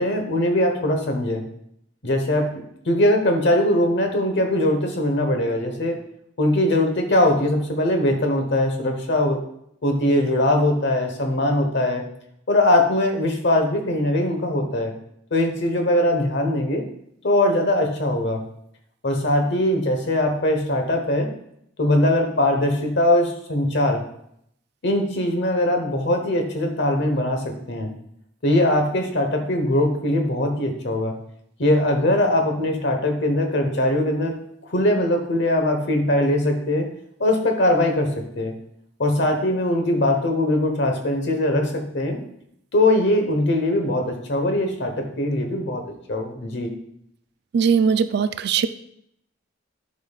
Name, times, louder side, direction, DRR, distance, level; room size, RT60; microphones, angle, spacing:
voice 1, 0.0-1.4 2.0-6.0 6.4-9.4 9.8-12.0 12.5-14.9 15.3-16.8 17.2-18.4 19.0-21.3 21.8-24.0 24.8-27.9 28.4-31.1 31.6-34.4 34.7-36.9 37.2-38.5 39.0-42.2 42.7-45.8 46.1-46.7, left 1 dB, 60° left, 4 dB, 1.2 m, -21 dB
voice 2, 47.5-48.7, right 6 dB, 55° right, 12 dB, 0.3 m, -20 dB
10.5 x 5.3 x 2.4 m, 0.72 s
head